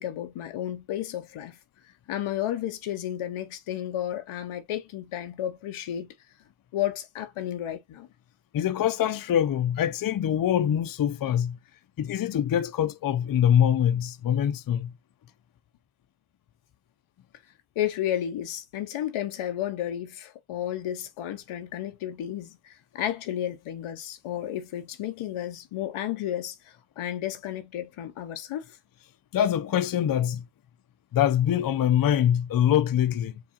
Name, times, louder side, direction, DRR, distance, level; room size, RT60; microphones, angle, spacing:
voice 1, 0.0-1.6 2.1-6.1 6.7-8.1 17.8-28.8, left 11 dB, 90° left, 0.7 m, -32 dB
voice 2, 8.5-11.6 12.0-14.9 29.3-30.5 31.1-33.4, left 10 dB, 45° left, 0.5 m, -24 dB
4.6 x 2.4 x 2.8 m
cardioid pair, 55°, 49 cm